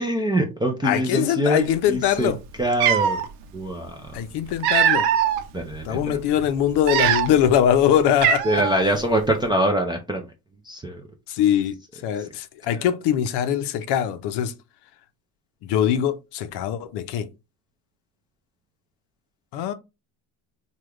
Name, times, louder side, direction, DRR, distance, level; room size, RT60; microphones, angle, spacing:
voice 1, 0.0-2.3 2.6-3.2 3.5-4.0 5.5-6.2 8.5-10.2 10.7-11.0, right 1 dB, 10° right, 0.4 m, -24 dB
voice 2, 0.8-2.4 4.1-5.1 5.6-8.6 11.3-11.7 12.0-14.5 15.6-17.3 19.5-19.7, left 10 dB, 55° left, 0.6 m, -22 dB
Cat, 2.3-2.4 2.7-3.3 4.2-5.4 6.0-6.1 6.7-7.5 7.8-7.9 8.2-8.8, right 9 dB, 80° right, 0.7 m, -21 dB
3.5 x 2.3 x 3.0 m
supercardioid pair, 110°, 49 cm